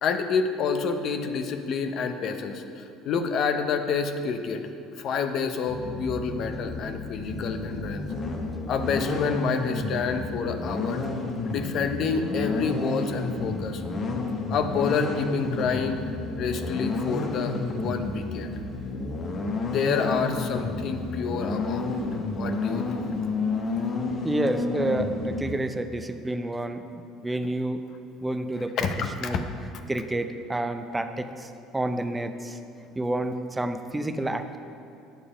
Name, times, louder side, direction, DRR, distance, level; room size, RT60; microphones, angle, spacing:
voice 1, 0.0-4.6 5.0-8.1 8.7-11.0 11.4-13.8 14.5-16.0 16.4-18.5 19.6-21.9 22.4-22.9 28.8-29.4, left 5 dB, 55° left, 7 dB, 0.7 m, -28 dB
sound 1, 5.7-25.5, left 3 dB, 40° left, 1.1 m, -31 dB
voice 2, 24.2-26.8 27.2-27.8 28.2-28.8 29.2-29.4 29.9-31.5 31.7-32.6 33.0-34.6, right 1 dB, 15° right, 8 dB, 0.6 m, -29 dB
9.0 x 6.8 x 5.0 m, 2.6 s
supercardioid pair, 85°, 0 cm